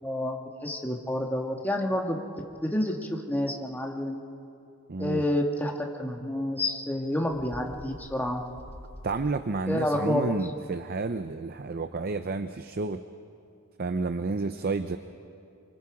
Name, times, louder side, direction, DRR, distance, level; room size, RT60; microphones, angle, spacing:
voice 1, 0.0-2.2 2.6-4.2 5.0-8.4 9.7-10.3, left 1 dB, 10° left, 1 dB, 1.7 m, -29 dB
voice 2, 4.9-5.2 9.0-13.0 13.8-15.0, right 3 dB, 45° right, 10 dB, 0.6 m, -30 dB
Bird, 7.3-9.8, equal, 30° left, 1.1 m, -46 dB
28.0 x 24.5 x 4.9 m, 2.5 s
head